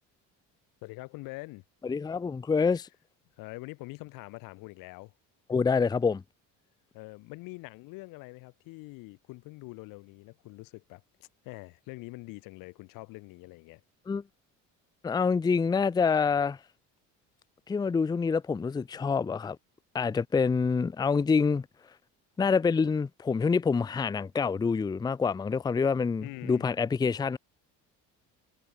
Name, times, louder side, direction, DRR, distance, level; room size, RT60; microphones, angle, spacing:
voice 1, 0.8-1.6 3.4-5.1 6.9-13.8 26.2-26.7, left 23 dB, 85° left, 7.8 m, -44 dB
voice 2, 1.8-2.9 5.5-6.2 14.1-14.2 15.0-16.6 17.7-19.6 19.9-21.7 22.4-27.4, left 5 dB, 10° left, 0.6 m, -26 dB
cardioid pair, 170°, 32 cm